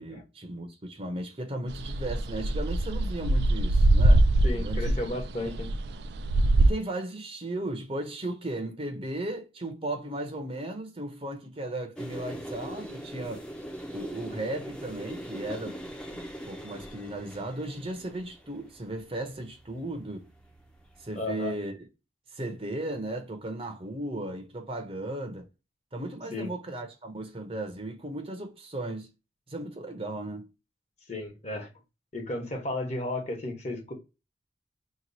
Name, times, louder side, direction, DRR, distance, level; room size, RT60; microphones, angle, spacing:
voice 1, 0.0-4.2 4.5-5.0 5.4-5.5 6.6-13.5 13.9-15.8 16.1-20.3 21.0-21.7 22.3-25.5 25.9-29.1 29.5-30.5, right 1 dB, 35° right, 0.7 m, -36 dB
sound 1, 1.7-6.7, right 1 dB, 65° right, 0.4 m, -23 dB
voice 2, 4.4-5.7 21.1-21.5 26.3-26.5 31.1-31.7 32.1-33.9, left 2 dB, 40° left, 1.2 m, -33 dB
sound 2, 12.0-21.3, equal, 5° left, 0.6 m, -42 dB
2.9 x 2.3 x 4.0 m
head